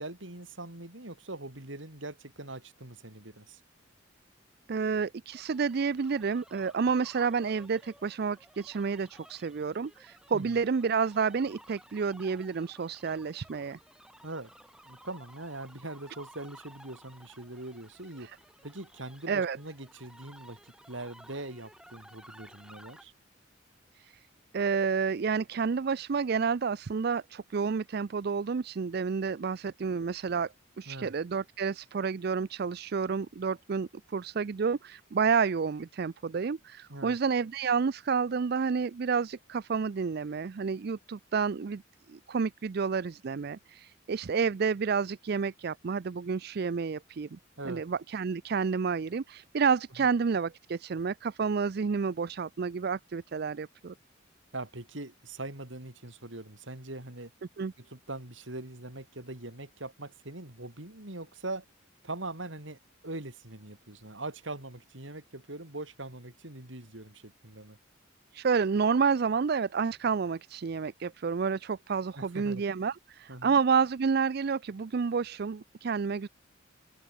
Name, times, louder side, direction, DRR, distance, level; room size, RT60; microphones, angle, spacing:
voice 1, 0.0-3.6 10.3-10.6 14.2-14.5 14.8-18.3 18.6-23.1 30.9-31.1 36.9-37.2 47.6-47.8 50.0-50.1 54.5-57.3 57.8-61.6 62.0-67.8 72.2-72.6 73.3-73.6, right 2 dB, 75° right, 4.2 m, -42 dB
voice 2, 4.7-13.8 18.2-18.3 19.3-19.6 23.9-24.2 24.5-41.8 42.1-47.4 47.7-53.9 57.6-57.7 68.3-76.3, right 5 dB, 55° right, 0.4 m, -30 dB
sound 1, 5.3-23.0, right 1 dB, 5° right, 4.5 m, -56 dB
head